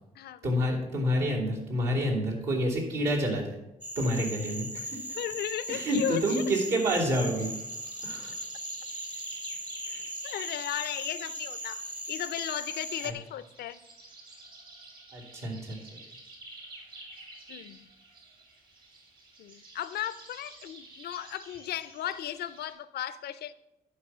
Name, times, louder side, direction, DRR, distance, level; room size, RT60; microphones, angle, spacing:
voice 1, 0.4-3.6 3.9-5.0 5.7-7.5 8.0-8.3 9.9-10.0 13.0-13.1 15.1-15.8, equal, 75° right, -4 dB, 3.0 m, -28 dB
Cricket / Frog, 3.8-13.1, equal, 10° right, 0.6 m, -39 dB
voice 2, 5.1-6.4 10.2-11.8 12.1-13.8 17.5-17.9 19.4-23.5, left 11 dB, 65° left, 15 dB, 0.5 m, -35 dB
sound 1, 5.4-22.7, right 2 dB, 60° right, 3.3 m, -51 dB
11.0 x 4.8 x 6.1 m, 0.94 s
supercardioid pair, 55°, 17 cm